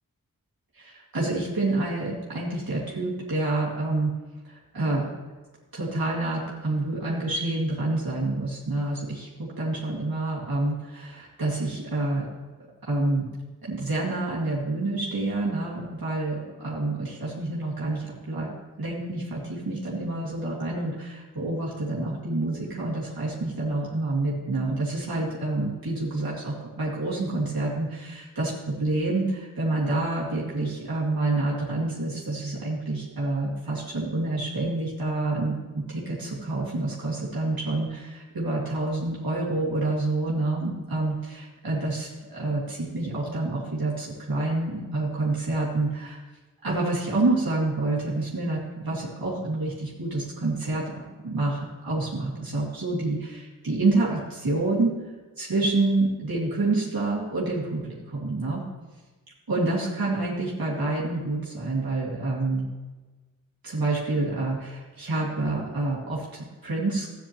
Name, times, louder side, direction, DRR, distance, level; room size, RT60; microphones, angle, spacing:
voice 1, 0.8-4.1 4.5-5.1 5.7-12.3 12.8-13.3 13.6-46.2 46.6-54.9 55.4-58.6 59.5-62.7 63.6-67.1, right 2 dB, 90° right, -6 dB, 2.2 m, -28 dB
13.0 x 9.1 x 3.0 m, 1.3 s
wide cardioid pair, 45°, 35 cm